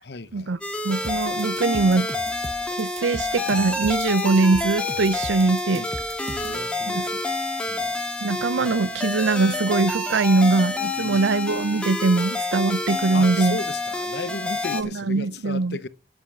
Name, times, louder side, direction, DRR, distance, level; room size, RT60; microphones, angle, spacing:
voice 1, 0.0-0.5 5.7-6.0 6.3-7.1 7.7-8.0 11.0-11.4 13.1-15.9, left 3 dB, 60° left, 0.9 m, -35 dB
sound 1, 0.6-14.8, left 2 dB, 5° left, 1.8 m, -28 dB
voice 2, 0.8-2.1 2.8-5.9 6.9-7.1 8.2-13.6 14.7-15.8, right 3 dB, 85° right, 0.6 m, -22 dB
sound 2, 1.0-6.6, right 2 dB, 35° right, 1.0 m, -37 dB
8.8 x 8.0 x 8.5 m
head